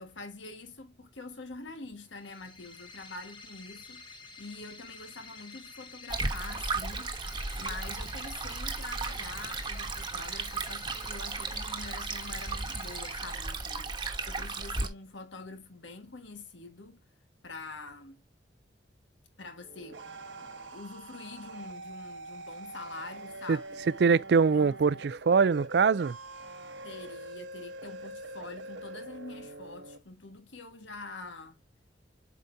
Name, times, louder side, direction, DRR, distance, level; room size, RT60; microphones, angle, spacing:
voice 1, 0.0-7.1 7.6-17.0 17.4-18.2 19.4-20.1 20.4-23.9 24.3-24.8 26.8-31.6, left 3 dB, 90° left, 1.5 m, -45 dB
sound 1, 2.1-14.0, left 4 dB, 25° left, 1.1 m, -50 dB
Stream, 6.1-14.9, right 3 dB, 25° right, 1.1 m, -35 dB
sound 2, 19.6-30.0, right 2 dB, 85° right, 1.1 m, -44 dB
voice 2, 24.0-26.2, right 5 dB, 65° right, 0.4 m, -23 dB
8.2 x 5.0 x 2.6 m
head